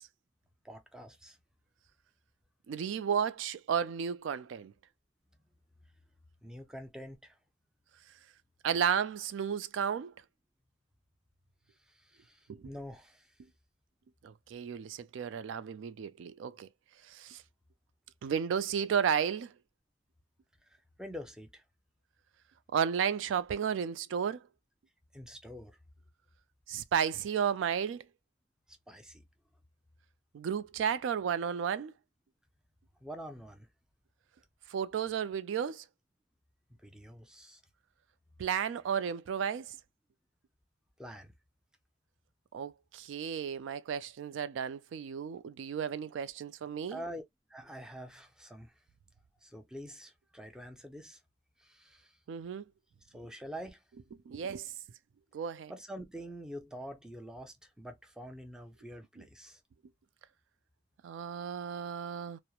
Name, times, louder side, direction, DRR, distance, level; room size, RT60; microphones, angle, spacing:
voice 1, 0.6-1.4 6.4-7.4 11.9-13.3 20.7-21.6 25.1-25.8 28.7-29.2 33.0-33.7 36.8-37.6 41.0-41.3 46.9-47.2 47.5-48.7 49.4-51.2 51.6-52.2 53.1-53.8 55.7-59.6, equal, 5° right, 0.5 m, -46 dB
voice 2, 2.7-4.7 8.6-10.1 12.5-12.7 14.2-16.7 17.1-17.4 18.2-19.5 22.7-24.4 26.7-28.0 30.3-31.9 34.7-35.8 38.4-39.8 42.5-47.0 52.3-52.7 54.3-54.7 55.3-55.7 61.0-62.4, right 7 dB, 85° right, 0.3 m, -33 dB
2.9 x 2.0 x 2.2 m
head